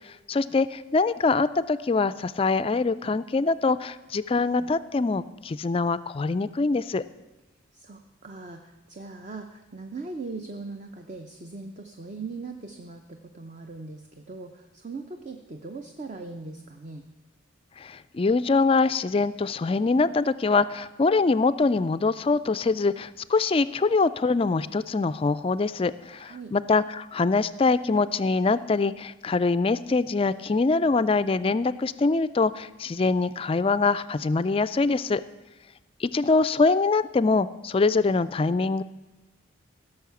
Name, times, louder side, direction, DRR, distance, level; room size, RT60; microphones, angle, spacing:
voice 1, 0.3-7.0 17.8-35.2 36.0-38.8, left 3 dB, 25° left, 15 dB, 0.3 m, -24 dB
voice 2, 7.7-17.0 26.1-26.5, right 3 dB, 35° right, 5 dB, 0.7 m, -40 dB
16.0 x 6.5 x 6.9 m, 1.2 s
head